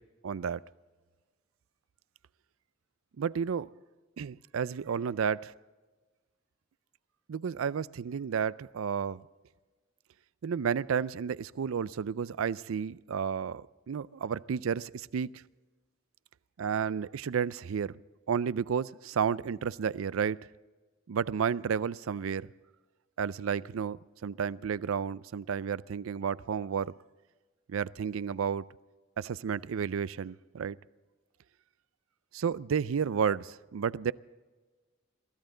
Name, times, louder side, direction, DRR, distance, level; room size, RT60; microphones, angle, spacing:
voice 1, 0.2-0.6 3.2-3.7 4.2-5.5 7.3-9.3 10.4-15.3 16.6-18.0 18.3-20.5 21.1-22.5 23.2-26.9 27.7-28.6 29.2-30.8 32.3-34.1, right 7 dB, 85° right, 0.4 m, -32 dB
23.0 x 15.5 x 3.8 m
head